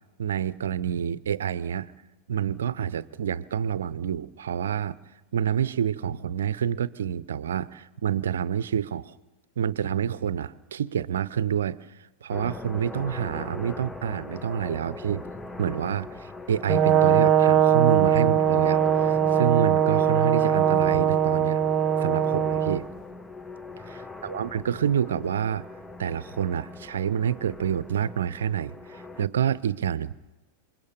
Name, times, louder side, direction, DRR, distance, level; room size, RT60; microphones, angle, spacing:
voice 1, 0.2-1.9 2.3-5.0 5.3-9.1 9.6-11.9 12.2-15.3 15.6-21.6 22.0-22.9 23.9-25.7 26.0-30.1, right 8 dB, 65° right, 19 dB, 0.7 m, -28 dB
sound 1, 12.3-29.3, left 3 dB, 10° left, 1.0 m, -39 dB
Brass instrument, 16.7-22.8, right 9 dB, 30° right, 0.8 m, -21 dB
27.5 x 22.5 x 7.0 m, 1.1 s
figure-of-eight pair, 90°, 0 cm